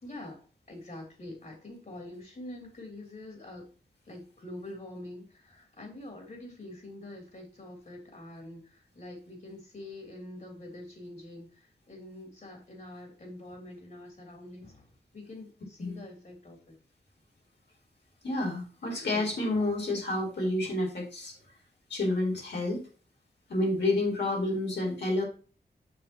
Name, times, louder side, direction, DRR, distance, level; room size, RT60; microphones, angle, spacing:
voice 1, 0.0-3.7 4.0-16.7, left 1 dB, 55° left, 1 dB, 2.9 m, -45 dB
voice 2, 18.2-21.3 21.9-22.8 23.5-25.2, left 2 dB, 85° left, -2 dB, 4.1 m, -29 dB
7.7 x 6.5 x 2.9 m, 0.37 s
wide cardioid pair, 105°, 17 cm